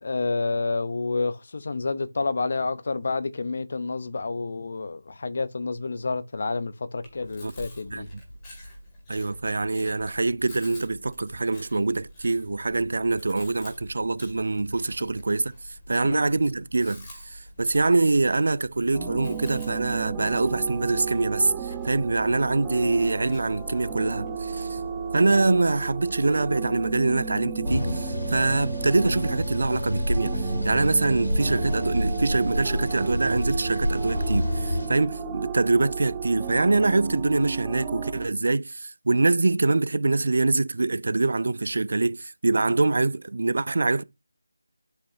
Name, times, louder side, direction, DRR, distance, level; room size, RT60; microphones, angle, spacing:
voice 1, 0.0-8.1 16.0-16.2, left 3 dB, 40° left, 0.6 m, -29 dB
Chewing mastication, 7.0-25.1, left 1 dB, 15° left, 2.1 m, -47 dB
voice 2, 9.1-24.8 25.1-44.0, right 3 dB, 50° right, 0.4 m, -24 dB
sound 1, 18.9-38.3, right 6 dB, 10° right, 0.6 m, -33 dB
sound 2, 27.6-34.9, left 1 dB, 75° left, 2.7 m, -28 dB
11.5 x 5.5 x 2.7 m
figure-of-eight pair, 160°, 0 cm